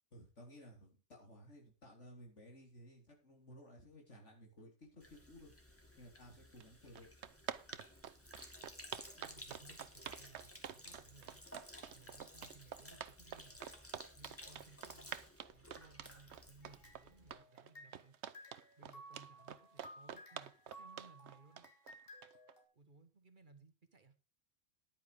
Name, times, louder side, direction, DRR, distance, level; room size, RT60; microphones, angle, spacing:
voice 1, 0.1-5.5 6.0-7.1, equal, 85° left, 0 dB, 4.1 m, -57 dB
Sink (filling or washing), 5.0-17.3, left 1 dB, 10° left, 2.0 m, -56 dB
sound 1, 6.6-6.7 6.9-22.5, right 9 dB, 75° right, 1.0 m, -47 dB
voice 2, 9.2-11.4 11.9-13.6 14.1-15.1 15.5-18.1 18.8-21.7 22.7-24.1, right 4 dB, 45° right, 9 dB, 1.5 m, -62 dB
sound 2, 16.6-18.1 18.3-22.6, equal, 55° left, 3.4 m, -57 dB
10.5 x 9.5 x 5.1 m, 0.32 s
omnidirectional pair, 1.2 m